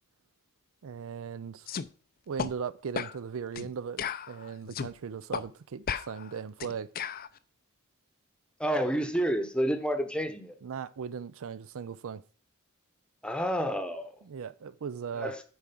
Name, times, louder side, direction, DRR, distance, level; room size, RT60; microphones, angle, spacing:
voice 1, 0.8-1.7 2.3-6.9 10.6-12.2 14.2-15.3, right 6 dB, 65° right, 0.4 m, -38 dB
sound 1, 1.7-1.9 2.4-2.5 3.0-3.2 3.6-3.7 4.0-4.9 5.3-5.5 5.9-7.3, left 7 dB, 40° left, 0.5 m, -35 dB
voice 2, 8.6-10.6 13.2-14.1 15.2-15.4, equal, 5° left, 0.9 m, -29 dB
8.8 x 4.8 x 5.9 m
head